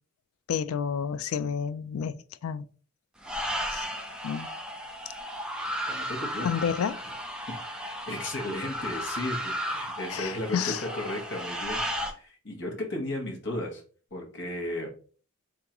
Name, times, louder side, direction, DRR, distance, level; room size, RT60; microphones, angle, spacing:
voice 1, 0.5-2.6 3.7-3.9 4.2-4.5 6.4-7.0 10.1-10.8, left 7 dB, 90° left, 0.4 m, -30 dB
sound 1, 3.2-12.1, equal, 5° right, 0.5 m, -34 dB
voice 2, 5.9-6.5 7.6-11.8 12.1-13.8 14.1-14.9, left 1 dB, 55° left, 1.2 m, -35 dB
3.8 x 3.6 x 2.9 m
head